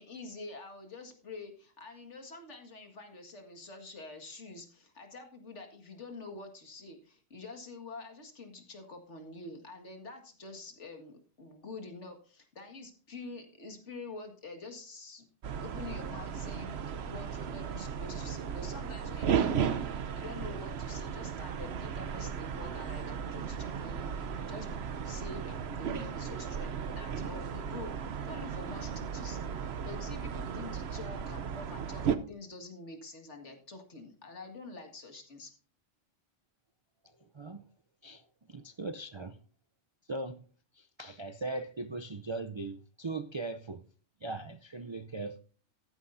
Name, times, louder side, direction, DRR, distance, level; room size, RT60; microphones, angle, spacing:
voice 1, 0.0-15.3 15.6-24.8 25.0-27.9 28.2-35.5, left 3 dB, 75° left, 2.2 m, -47 dB
sound 1, 15.4-32.2, right 7 dB, 65° right, 1.0 m, -35 dB
voice 2, 37.3-37.7 38.0-39.4 40.1-40.4 40.7-43.8 44.2-45.4, right 3 dB, 45° right, 0.4 m, -39 dB
14.0 x 9.7 x 2.6 m
omnidirectional pair, 1.2 m